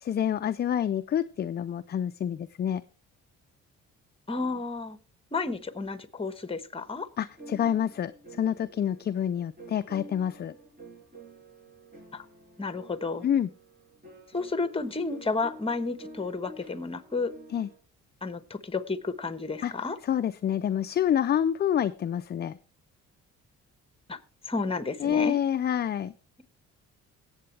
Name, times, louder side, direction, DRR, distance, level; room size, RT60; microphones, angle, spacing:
voice 1, 0.0-2.8 7.2-8.1 8.4-10.5 13.2-13.5 17.5-17.7 19.6-19.7 20.0-22.6 25.0-26.1, left 9 dB, 35° left, 11 dB, 0.4 m, -27 dB
voice 2, 4.3-5.0 5.3-7.1 12.1-12.2 12.6-13.2 14.3-17.3 18.2-20.0 24.1-24.2 24.5-25.4, left 3 dB, 20° left, 11 dB, 1.2 m, -31 dB
sound 1, 7.3-17.8, right 1 dB, 30° right, 6.5 m, -49 dB
18.5 x 7.9 x 3.3 m, 0.38 s
cardioid pair, 90°, 30 cm